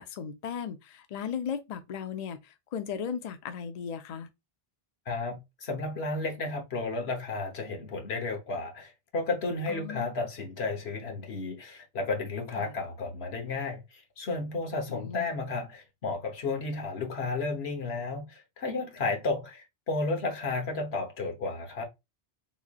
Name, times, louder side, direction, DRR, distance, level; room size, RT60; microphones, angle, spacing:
voice 1, 0.0-4.3 9.7-10.1 12.6-12.7 14.9-15.4, left 7 dB, 50° left, 0.5 m, -37 dB
voice 2, 5.1-21.8, left 3 dB, 85° left, 1.3 m, -33 dB
3.7 x 3.2 x 2.3 m
omnidirectional pair, 1.0 m